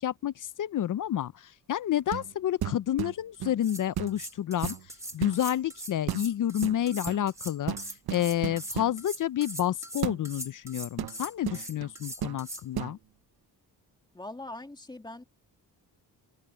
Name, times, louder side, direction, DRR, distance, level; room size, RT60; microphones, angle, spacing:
voice 1, 0.0-4.8 5.1-7.8 8.1-13.0, left 11 dB, 55° left, 0.5 m, -29 dB
sound 1, 2.1-2.3 2.6-3.6 4.0-4.2 4.6-5.4 6.1-6.3 6.6-7.2 7.7-9.0 10.0-10.2 11.0-11.9 12.2-12.4 12.7-13.0, right 11 dB, 70° right, 0.8 m, -34 dB
sound 2, 3.3-3.4 3.6-12.6, right 1 dB, 10° right, 1.6 m, -41 dB
voice 2, 14.1-15.2, left 2 dB, 10° left, 2.1 m, -41 dB
wide cardioid pair, 130°, 39 cm